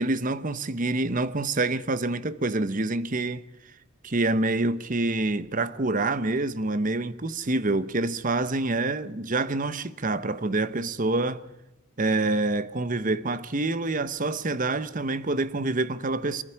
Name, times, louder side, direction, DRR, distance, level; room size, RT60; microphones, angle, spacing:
voice 1, 0.0-3.4 4.0-11.4 12.0-16.4, right 2 dB, 40° right, 1.0 m, -26 dB
24.0 x 12.0 x 10.0 m
head